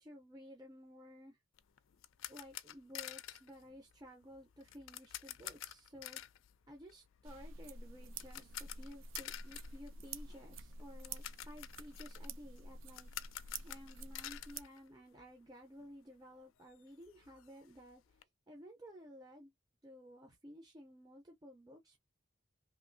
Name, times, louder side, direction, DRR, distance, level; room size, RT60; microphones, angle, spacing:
voice 1, 0.0-1.4 2.3-6.2 6.7-13.1 13.6-18.0 18.5-19.5 19.8-22.0, equal, 20° right, 0.6 m, -55 dB
sound 1, 1.6-15.5 15.8-15.9 16.3-16.4 16.7-18.2, left 13 dB, 80° left, 0.4 m, -50 dB
sound 2, 7.3-14.6, right 3 dB, 80° right, 0.5 m, -49 dB
3.1 x 2.6 x 2.6 m
head